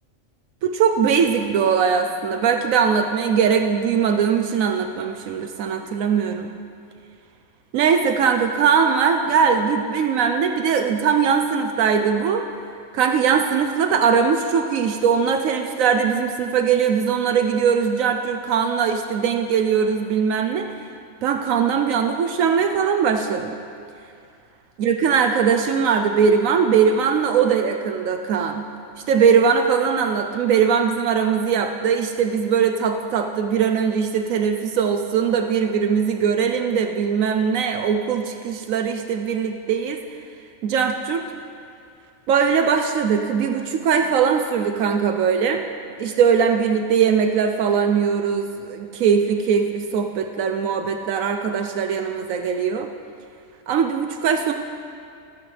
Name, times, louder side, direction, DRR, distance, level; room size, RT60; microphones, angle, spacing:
voice 1, 0.6-6.5 7.7-12.5 12.9-20.7 21.2-23.6 24.8-28.7 29.1-40.0 40.6-41.2 42.3-45.6 46.0-52.9 53.7-54.5, right 6 dB, 80° right, 6 dB, 1.0 m, -20 dB
23.5 x 9.0 x 3.3 m, 2.4 s
omnidirectional pair, 1.4 m